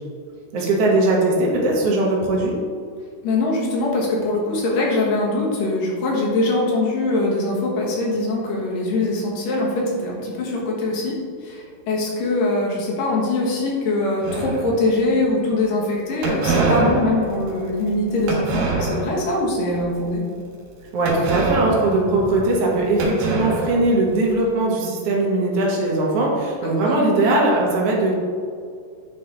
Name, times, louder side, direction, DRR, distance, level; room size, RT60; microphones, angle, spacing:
voice 1, 0.5-2.5 20.9-28.1, right 2 dB, 55° right, -3 dB, 2.1 m, -20 dB
voice 2, 3.2-11.1 11.4-20.2 26.6-27.2, left 2 dB, 90° left, -3 dB, 3.1 m, -22 dB
sound 1, 14.2-15.0 16.2-19.3 19.7-20.1 21.1-22.7 23.0-24.3, right 3 dB, 90° right, 3.0 m, -25 dB
9.6 x 4.3 x 3.9 m, 2.2 s
omnidirectional pair, 3.7 m